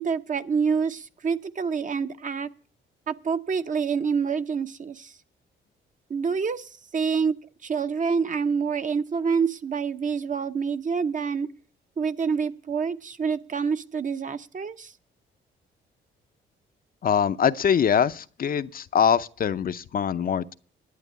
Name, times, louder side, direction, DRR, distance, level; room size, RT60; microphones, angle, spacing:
voice 1, 0.0-2.5 3.1-5.2 6.1-11.5 12.0-14.9, right 6 dB, 40° right, 0.9 m, -27 dB
voice 2, 17.0-20.5, left 8 dB, 45° left, 0.7 m, -23 dB
11.5 x 8.3 x 8.3 m
cardioid pair, 90°, 20 cm